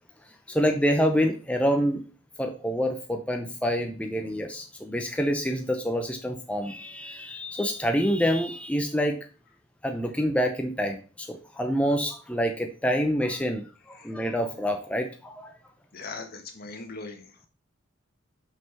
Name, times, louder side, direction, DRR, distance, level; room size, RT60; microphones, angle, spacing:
voice 1, 0.5-2.0 2.4-9.2 9.8-15.5, equal, 5° left, 3 dB, 0.7 m, -27 dB
voice 2, 15.9-17.3, left 3 dB, 50° left, 5 dB, 1.5 m, -40 dB
6.3 x 5.5 x 5.6 m, 0.37 s
head